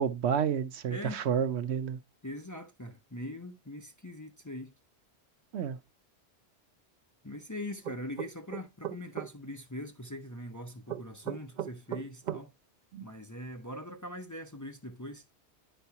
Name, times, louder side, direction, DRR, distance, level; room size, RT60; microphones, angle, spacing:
voice 1, 0.0-2.0 5.5-5.8 12.9-13.0, right 8 dB, 80° right, 1.0 m, -30 dB
voice 2, 2.2-4.7 7.2-12.5 13.0-15.2, left 1 dB, 20° left, 0.6 m, -42 dB
sound 1, 7.8-9.3 10.9-12.4, right 11 dB, 50° right, 0.7 m, -36 dB
10.0 x 4.6 x 2.8 m
omnidirectional pair, 1.1 m